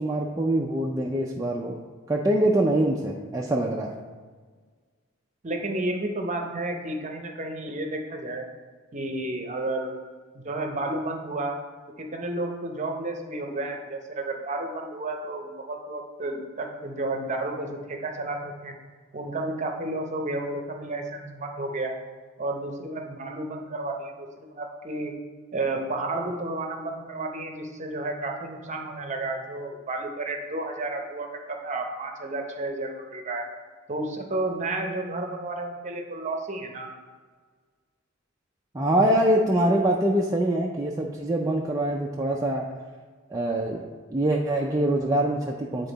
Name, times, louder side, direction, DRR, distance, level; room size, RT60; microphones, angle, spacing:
voice 1, 0.0-1.8 2.1-3.9 38.7-42.6 43.3-43.9 44.1-45.9, right 1 dB, 15° right, -2 dB, 0.4 m, -24 dB
voice 2, 5.4-8.4 8.9-10.0 10.3-11.6 12.0-18.8 19.1-21.9 22.4-24.3 24.6-25.1 25.5-33.5 33.9-36.9, right 2 dB, 35° right, 3 dB, 0.8 m, -31 dB
9.2 x 3.8 x 4.0 m, 1.5 s
head